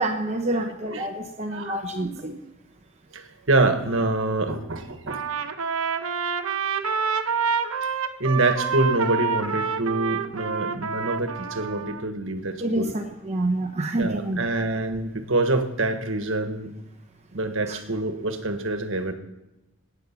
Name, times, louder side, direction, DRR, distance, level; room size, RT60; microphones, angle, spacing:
voice 1, 0.0-2.4 12.6-14.4 17.7-17.8, right 1 dB, 30° right, 4 dB, 0.8 m, -27 dB
voice 2, 3.1-5.2 8.2-12.9 14.0-16.7 17.3-19.1, right 2 dB, 65° right, 7 dB, 1.4 m, -26 dB
Trumpet, 5.1-12.0, right 6 dB, 85° right, 1.0 m, -27 dB
18.5 x 9.1 x 5.9 m, 0.97 s
head